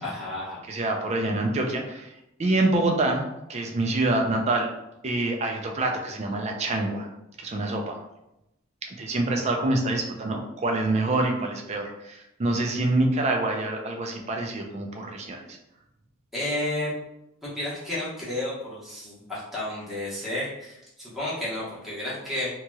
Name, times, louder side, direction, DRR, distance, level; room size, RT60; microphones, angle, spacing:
voice 1, 0.0-0.6 16.3-16.9 17.4-22.5, left 1 dB, ahead, -9 dB, 1.1 m, -32 dB
voice 2, 0.7-2.1 2.4-4.7 5.0-7.1 7.4-8.0 8.8-15.4, right 2 dB, 30° right, 2 dB, 0.4 m, -26 dB
2.9 x 2.9 x 2.3 m, 0.86 s
head